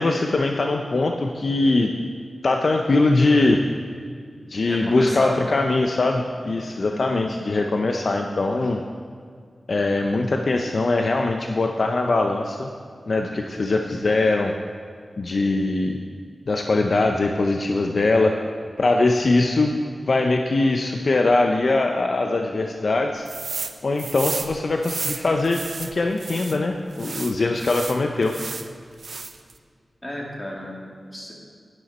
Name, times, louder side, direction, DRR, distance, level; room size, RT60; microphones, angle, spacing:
voice 1, 0.0-1.9 2.4-3.6 4.5-8.8 9.7-12.7 13.1-14.5 15.2-16.0 16.5-18.3 18.8-19.8 20.1-23.3 23.8-28.4, left 2 dB, 60° left, 3 dB, 0.6 m, -21 dB
voice 2, 4.6-5.4 6.8-7.3 30.0-30.8 31.1-31.3, left 1 dB, 20° left, -2 dB, 2.5 m, -32 dB
sound 1, 23.3-23.7 24.0-26.6 27.0-28.7 29.0-29.5, right 4 dB, 65° right, 0.6 m, -32 dB
11.0 x 11.0 x 4.3 m, 2.2 s
wide cardioid pair, 100°, 0 cm